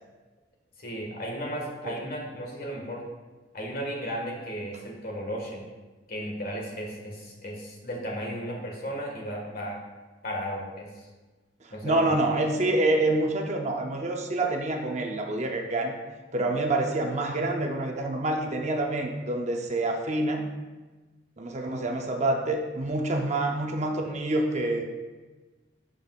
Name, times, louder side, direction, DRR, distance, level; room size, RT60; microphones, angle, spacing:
voice 1, 0.8-3.0 3.5-5.6 6.1-9.8 10.2-11.0 11.7-12.0, equal, 50° left, -1 dB, 1.7 m, -35 dB
voice 2, 11.8-15.9 16.3-20.5 21.4-24.8, right 2 dB, 35° right, 3 dB, 0.6 m, -27 dB
11.5 x 5.2 x 2.4 m, 1.2 s
head